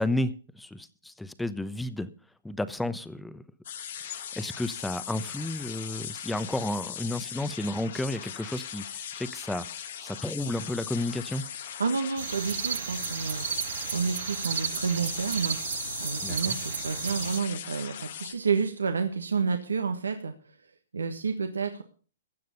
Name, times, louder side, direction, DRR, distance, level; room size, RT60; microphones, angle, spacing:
voice 1, 0.0-2.1 2.4-3.4 4.0-11.4 16.2-16.6, left 1 dB, 5° left, 14 dB, 1.0 m, -32 dB
sound 1, 3.6-18.3, left 9 dB, 60° left, 1.7 m, -39 dB
voice 2, 11.8-15.6 16.0-20.3 20.9-21.8, right 5 dB, 80° right, 6 dB, 1.4 m, -30 dB
sound 2, 12.2-17.4, right 8 dB, 65° right, 0.8 m, -33 dB
16.0 x 9.3 x 5.3 m, 0.39 s
hypercardioid pair, 125°, 0 cm